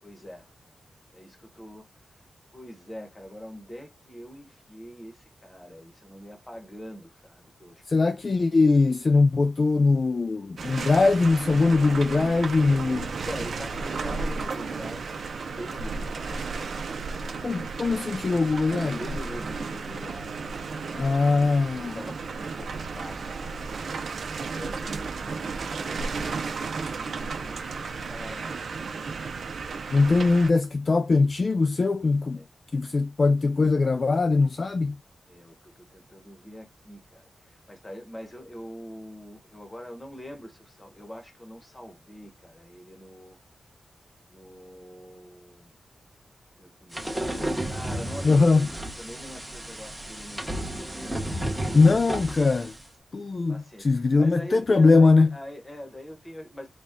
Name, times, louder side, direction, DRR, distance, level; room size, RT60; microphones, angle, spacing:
voice 1, 0.0-0.5 1.1-1.9 2.5-8.1 13.1-16.4 16.9-17.3 18.6-20.6 21.3-23.4 24.3-28.9 32.3-32.5 35.3-43.4 44.3-45.7 46.6-51.8 53.5-56.7, equal, 15° left, 1.1 m, -44 dB
voice 2, 7.9-13.1 17.4-19.0 20.9-22.0 29.9-32.4 32.7-35.0 48.2-48.7 51.7-52.7 53.1-55.4, left 3 dB, 40° left, 0.3 m, -21 dB
sound 1, 10.6-30.5, right 4 dB, 65° right, 0.6 m, -33 dB
sound 2, 46.9-52.8, right 1 dB, 5° right, 1.1 m, -33 dB
4.1 x 2.3 x 3.6 m
wide cardioid pair, 135°, 0 cm